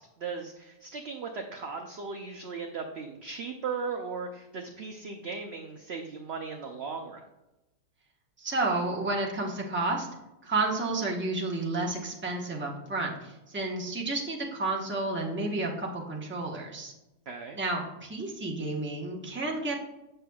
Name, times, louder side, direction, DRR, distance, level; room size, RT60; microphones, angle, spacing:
voice 1, 0.0-7.2 17.3-17.6, right 5 dB, 60° right, 3 dB, 0.7 m, -37 dB
voice 2, 8.4-10.1 10.4-16.9 17.6-19.8, right 2 dB, 10° right, -2 dB, 0.9 m, -31 dB
7.8 x 6.6 x 2.3 m, 0.97 s
omnidirectional pair, 1.6 m